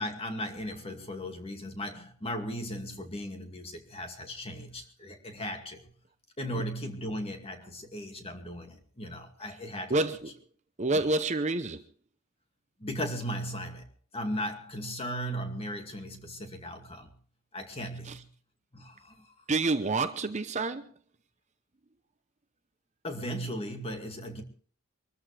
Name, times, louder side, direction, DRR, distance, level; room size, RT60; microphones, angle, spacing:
voice 1, 0.0-5.9 6.4-10.0 10.9-11.0 12.8-13.9 14.1-17.1 17.5-18.3 18.7-19.3 23.0-24.4, equal, 25° left, 2.3 m, -37 dB
voice 2, 9.9-10.3 10.8-11.8 18.0-18.2 19.5-20.9, right 3 dB, 30° right, 0.8 m, -28 dB
24.5 x 13.5 x 3.4 m
head